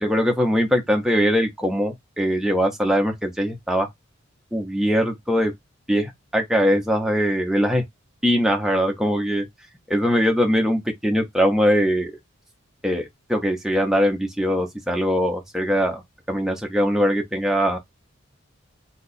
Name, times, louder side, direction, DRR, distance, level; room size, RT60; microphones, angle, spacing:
voice 1, 0.0-3.9 4.5-5.5 5.9-7.8 8.2-9.5 9.9-12.2 12.8-16.0 16.3-17.8, equal, ahead, 0.6 m, -21 dB
2.7 x 2.3 x 4.0 m
head